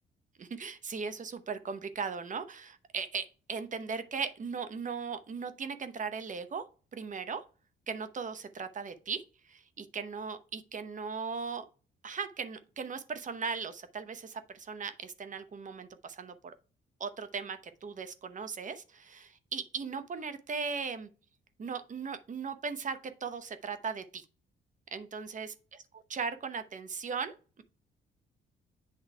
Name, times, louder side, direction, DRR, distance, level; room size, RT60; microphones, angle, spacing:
voice 1, 0.4-6.6 6.9-7.4 7.9-11.6 12.0-16.5 17.0-21.1 21.6-24.2 24.9-25.5 25.9-27.6, right 5 dB, 40° right, 0.8 m, -38 dB
8.2 x 3.1 x 4.5 m
cardioid pair, 90°, 20 cm